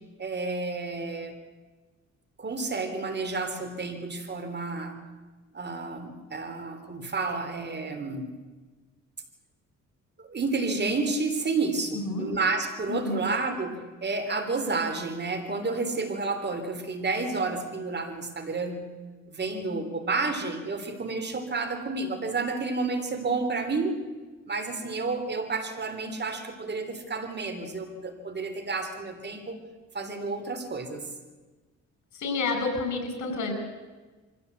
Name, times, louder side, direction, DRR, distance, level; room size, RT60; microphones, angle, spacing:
voice 1, 0.2-1.4 2.4-5.0 5.5-8.3 10.2-18.8 19.3-24.0 24.5-29.6 29.9-31.0, right 3 dB, 35° right, 8 dB, 3.4 m, -30 dB
voice 2, 12.9-13.2 32.2-33.5, left 3 dB, 70° left, 6 dB, 5.6 m, -29 dB
23.5 x 16.0 x 8.2 m, 1.3 s
cardioid pair, 90°, 30 cm